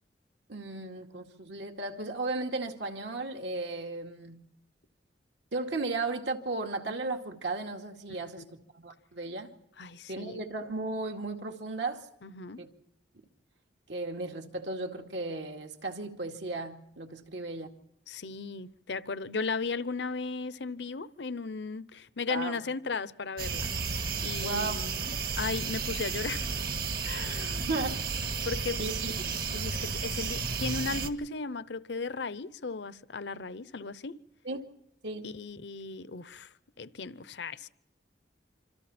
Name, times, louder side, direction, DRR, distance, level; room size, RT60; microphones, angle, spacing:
voice 1, 0.5-4.5 5.5-9.5 10.1-12.1 12.6-12.7 13.9-17.7 22.3-22.6 24.4-24.9 27.6-28.0 28.8-29.1 34.4-34.6 35.0-35.3, right 3 dB, 75° right, 2.3 m, -35 dB
voice 2, 8.1-8.5 9.8-10.4 12.2-12.6 18.1-23.7 24.2-26.5 27.0-27.9 28.4-28.8 29.5-34.2 35.2-37.7, left 4 dB, 70° left, 0.8 m, -36 dB
sound 1, 23.4-31.1, right 5 dB, 55° right, 1.7 m, -33 dB
26.5 x 26.5 x 4.3 m
head